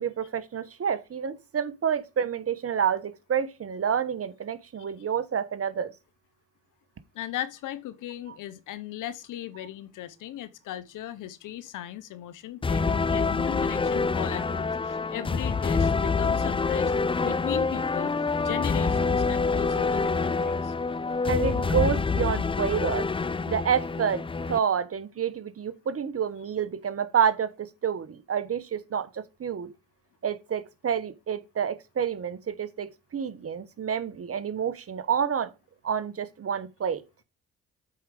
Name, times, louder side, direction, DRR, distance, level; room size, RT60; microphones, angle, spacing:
voice 1, 0.0-5.9 8.3-8.4 21.3-23.1 23.5-29.7 30.2-35.5 35.8-37.0, right 8 dB, 45° right, 1.1 m, -29 dB
voice 2, 7.1-16.9 17.2-18.1 18.4-20.7, left 12 dB, 75° left, 0.9 m, -37 dB
sound 1, 12.6-24.6, left 4 dB, 15° left, 0.4 m, -26 dB
7.8 x 4.9 x 4.9 m
supercardioid pair, 50°, 31 cm